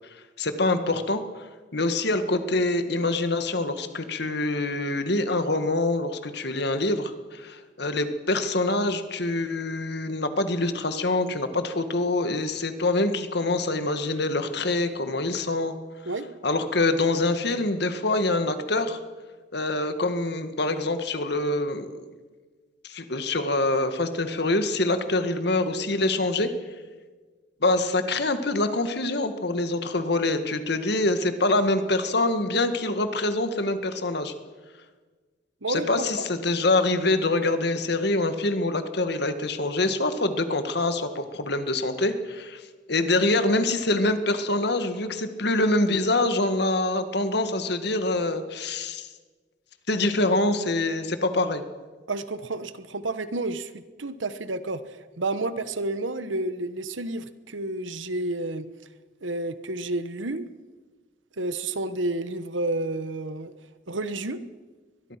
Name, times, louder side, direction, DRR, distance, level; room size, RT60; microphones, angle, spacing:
voice 1, 0.4-1.2 1.7-15.7 16.4-19.0 19.5-22.1 22.8-26.5 27.6-34.3 35.7-42.6 42.9-49.1 49.9-51.6, left 2 dB, 60° left, 9 dB, 1.8 m, -25 dB
voice 2, 35.6-36.3 52.1-58.7 59.2-60.5 61.4-63.5 63.9-64.4, right 2 dB, 85° right, 13 dB, 1.3 m, -30 dB
22.5 x 21.0 x 5.9 m, 1.3 s
head